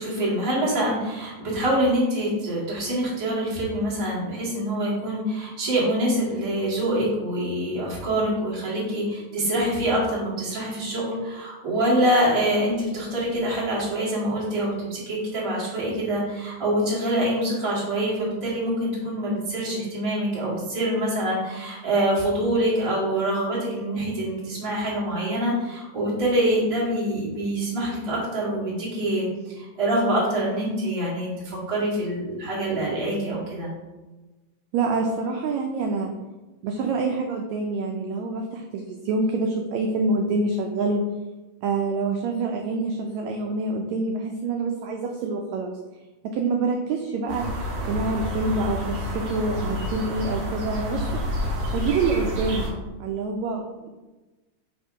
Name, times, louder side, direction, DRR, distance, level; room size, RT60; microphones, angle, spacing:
voice 1, 0.0-33.7, right 1 dB, 15° right, -7 dB, 1.1 m, -25 dB
voice 2, 34.7-36.1 36.6-41.0 41.6-45.7 46.2-47.4 47.9-51.2 51.7-52.7 53.0-53.9, right 3 dB, 85° right, 2 dB, 1.6 m, -26 dB
sound 1, 47.3-52.7, left 1 dB, 55° right, 2.4 m, -29 dB
5.1 x 3.5 x 5.3 m, 1.1 s
omnidirectional pair, 3.8 m